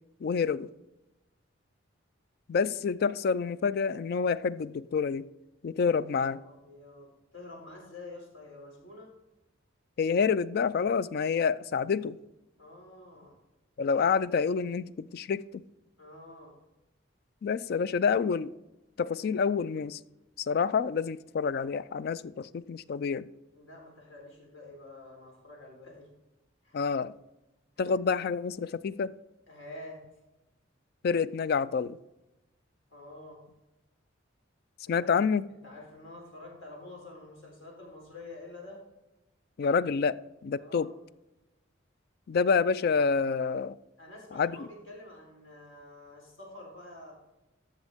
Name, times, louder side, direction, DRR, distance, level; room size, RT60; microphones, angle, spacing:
voice 1, 0.2-0.7 2.5-5.3 5.6-6.4 10.0-12.2 13.8-15.6 17.4-18.5 19.0-20.0 20.4-23.3 26.7-27.1 27.8-29.1 31.0-32.0 34.9-35.4 39.6-40.2 40.4-40.9 42.3-43.8 44.4-44.7, left 5 dB, 50° left, 0.3 m, -28 dB
voice 2, 5.8-9.1 12.6-13.4 16.0-16.5 23.5-26.1 26.6-26.8 27.8-27.9 29.5-30.0 32.9-33.4 34.8-35.0 35.6-38.8 40.6-40.9 44.0-47.1, left 2 dB, 75° left, 3.6 m, -48 dB
13.0 x 6.4 x 3.5 m
head